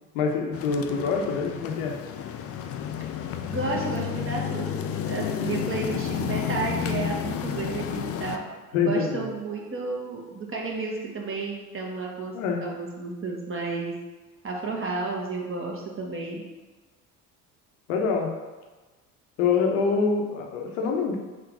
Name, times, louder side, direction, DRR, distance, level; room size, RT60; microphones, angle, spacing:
voice 1, 0.1-2.0 8.7-9.3 12.3-12.7 17.9-18.3 19.4-21.2, left 5 dB, 70° left, 1 dB, 0.9 m, -25 dB
sound 1, 0.5-8.4, left 8 dB, 35° left, 0.4 m, -31 dB
voice 2, 3.5-8.4 8.8-12.3 12.6-13.9 14.4-16.4, right 3 dB, 30° right, -2 dB, 1.2 m, -32 dB
3.7 x 2.9 x 4.8 m, 1.2 s
hypercardioid pair, 60°, 44 cm